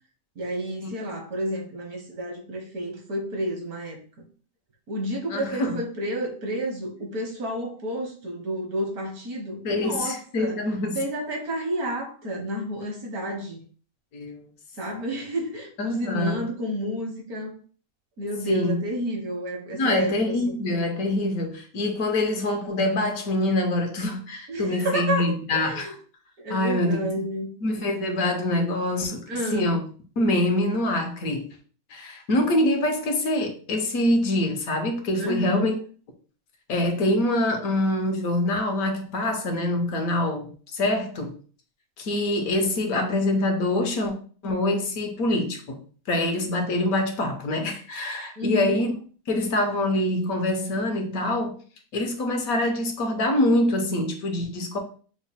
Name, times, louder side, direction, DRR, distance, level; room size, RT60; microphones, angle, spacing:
voice 1, 0.4-4.0 4.9-10.6 10.9-13.6 14.8-17.5 18.2-20.5 24.5-25.9 26.4-27.5 29.3-29.7 35.2-35.7 48.4-48.8, equal, 80° right, 1.7 m, -30 dB
voice 2, 5.3-5.8 9.6-11.0 14.1-14.4 15.8-16.5 18.5-18.8 19.7-26.0 26.5-27.1 27.6-29.2 29.5-29.8 30.2-31.5 31.9-35.8 36.7-41.3 42.0-44.1 44.4-45.8 46.1-48.9 49.3-51.6 51.9-54.8, left 1 dB, 70° left, 1.3 m, -25 dB
5.9 x 2.2 x 4.1 m
omnidirectional pair, 1.6 m